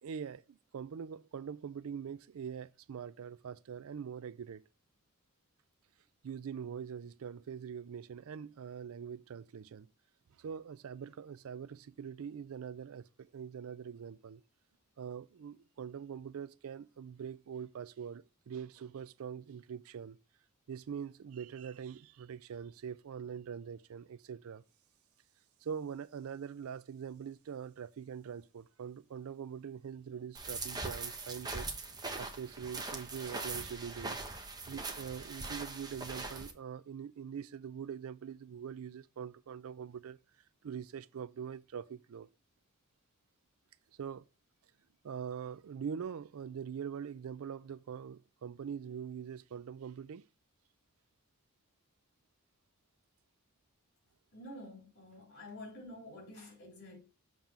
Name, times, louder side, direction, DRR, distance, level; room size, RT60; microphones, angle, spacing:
voice 1, 0.0-4.6 6.2-9.9 10.4-14.4 15.0-20.2 20.7-24.6 25.6-31.7 32.2-34.2 34.7-40.2 40.6-42.3 44.0-44.2 45.0-50.3, right 7 dB, 75° right, 0.4 m, -43 dB
sound 1, 30.3-36.5, right 3 dB, 20° right, 0.9 m, -41 dB
voice 2, 54.3-57.0, left 1 dB, 55° left, 4.2 m, -49 dB
7.2 x 3.8 x 5.9 m
head